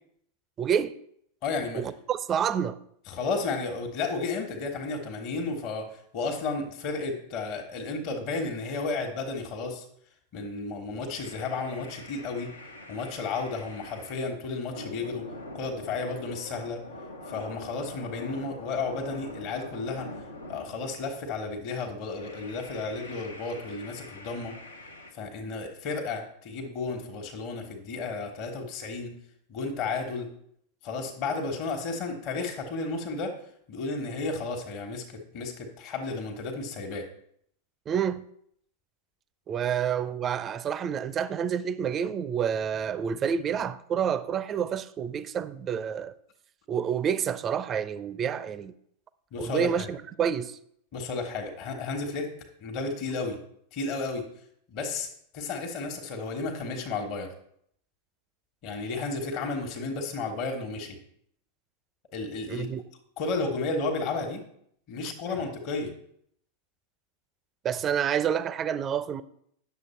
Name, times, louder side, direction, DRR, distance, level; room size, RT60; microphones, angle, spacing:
voice 1, 0.6-0.9 1.7-2.8 37.9-38.2 39.5-46.1 46.7-48.7 49.4-50.6 62.5-62.8 65.0-65.1 67.6-69.2, right 8 dB, 25° right, 0.5 m, -28 dB
voice 2, 1.4-1.8 3.1-9.8 10.3-12.5 12.9-15.3 15.5-16.8 17.3-20.1 20.5-24.6 25.1-29.2 29.5-30.3 30.8-33.3 33.7-37.0 49.3-49.9 50.9-52.3 52.6-53.4 53.7-54.3 54.7-55.1 55.3-57.3 58.6-61.0 62.1-62.7 63.2-64.4 64.9-65.9, left 3 dB, 40° left, 1.4 m, -33 dB
sound 1, 11.1-14.3 14.7-21.4 22.1-25.1, left 1 dB, 80° left, 1.0 m, -44 dB
9.3 x 6.8 x 4.4 m
figure-of-eight pair, 90°, 0 cm